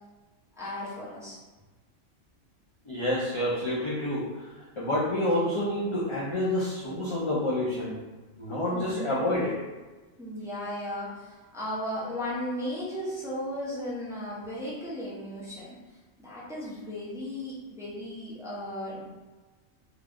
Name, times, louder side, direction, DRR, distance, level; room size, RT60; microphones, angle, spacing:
voice 1, 0.6-1.4 8.7-9.2 10.2-15.7 16.2-19.2, left 1 dB, 5° right, -9 dB, 0.7 m, -36 dB
voice 2, 2.9-4.5 4.8-8.0 8.4-9.5, left 1 dB, 40° left, -8 dB, 0.4 m, -28 dB
2.8 x 2.4 x 3.5 m, 1.2 s
omnidirectional pair, 1.4 m